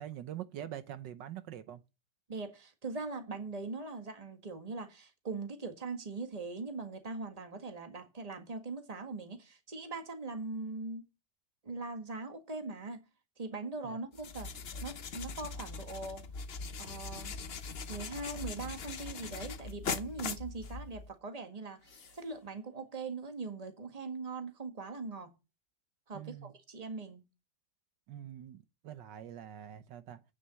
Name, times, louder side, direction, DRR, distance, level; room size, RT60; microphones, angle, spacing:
voice 1, 0.0-1.8 13.8-14.0 26.1-26.5 28.1-30.2, right 11 dB, 75° right, 1.5 m, -44 dB
voice 2, 2.3-11.1 11.6-13.1 13.4-16.2 16.8-17.3 17.9-25.3 26.1-27.2, right 3 dB, 20° right, 1.6 m, -41 dB
notepad eraser, 14.1-21.1, left 5 dB, 45° left, 0.8 m, -41 dB
sound 1, 16.9-18.3 21.8-22.6, left 5 dB, 80° left, 2.6 m, -62 dB
9.1 x 7.0 x 7.6 m
omnidirectional pair, 2.0 m